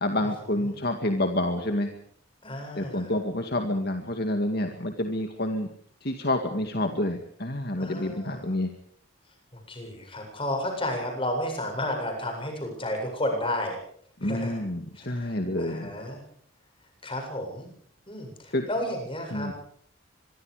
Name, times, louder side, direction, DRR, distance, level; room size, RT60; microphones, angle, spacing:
voice 1, 0.0-1.9 2.8-5.7 6.0-8.7 14.2-15.9 18.5-18.7 19.3-19.5, left 1 dB, 50° left, 5 dB, 2.2 m, -28 dB
voice 2, 2.4-3.1 7.8-8.4 9.5-13.8 14.2-14.6 14.9-16.2 17.0-17.7 18.1-19.5, left 1 dB, 25° left, 3 dB, 7.8 m, -32 dB
25.0 x 23.5 x 5.1 m, 0.62 s
head